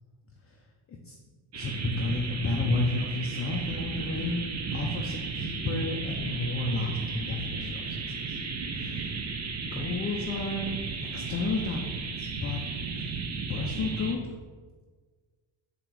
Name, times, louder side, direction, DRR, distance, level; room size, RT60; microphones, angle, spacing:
voice 1, 1.5-4.4 4.7-8.4 8.8-9.1 9.7-10.8 11.0-12.6 13.0-13.1 13.5-14.2, left 3 dB, 30° left, 0 dB, 0.5 m, -32 dB
sound 1, 1.5-14.1, right 4 dB, 35° right, 0.6 m, -34 dB
7.6 x 2.9 x 4.6 m, 1.5 s
cardioid pair, 160°, 49 cm